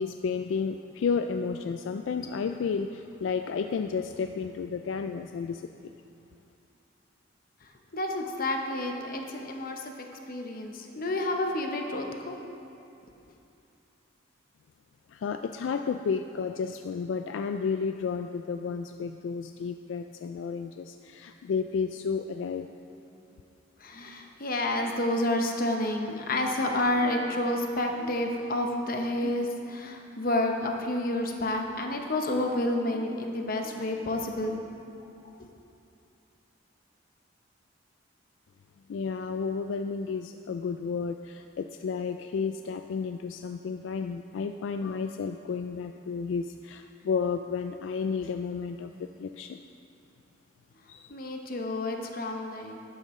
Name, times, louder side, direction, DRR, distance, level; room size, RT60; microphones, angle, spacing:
voice 1, 0.0-5.9 15.1-22.7 38.9-49.6 50.9-51.1, left 5 dB, 75° left, 7 dB, 0.3 m, -32 dB
voice 2, 7.9-9.9 10.3-12.4 23.8-34.6 51.1-52.8, left 1 dB, 50° left, 3 dB, 0.9 m, -29 dB
12.0 x 9.6 x 3.2 m, 2.7 s
head